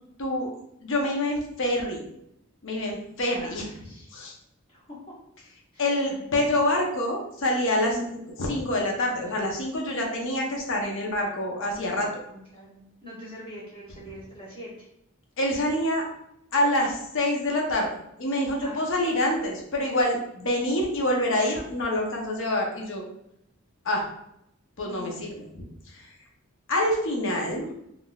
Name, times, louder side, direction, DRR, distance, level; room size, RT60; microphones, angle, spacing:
voice 1, 0.2-0.5 0.8-2.1 2.6-3.6 4.2-4.3 5.8-12.1 15.4-16.0 16.5-17.9 18.2-23.0 23.8-24.0 24.8-25.7 25.9-26.0 26.7-27.7, left 1 dB, 60° left, 0 dB, 0.7 m, -26 dB
voice 2, 3.4-4.3 4.7-5.2 5.7-5.9 7.7-8.1 12.3-14.9 18.6-18.9 24.8-25.1 27.3-27.7, left 1 dB, 25° left, -8 dB, 1.1 m, -43 dB
3.6 x 2.5 x 2.3 m, 0.78 s
head